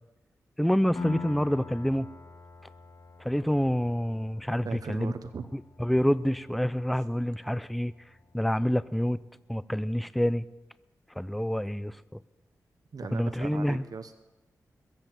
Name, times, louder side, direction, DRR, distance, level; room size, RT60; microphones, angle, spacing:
voice 1, 0.6-2.1 3.2-5.1 5.5-7.9 8.3-9.2 9.5-10.4 11.2-12.2 13.1-13.8, equal, ahead, 17 dB, 0.5 m, -27 dB
Piano, 1.0-8.3, left 4 dB, 55° left, 1.7 m, -45 dB
voice 2, 4.6-5.5 12.9-14.2, right 5 dB, 60° right, 9 dB, 0.8 m, -38 dB
21.5 x 7.9 x 7.5 m, 1.0 s
cardioid pair, 50°, 7 cm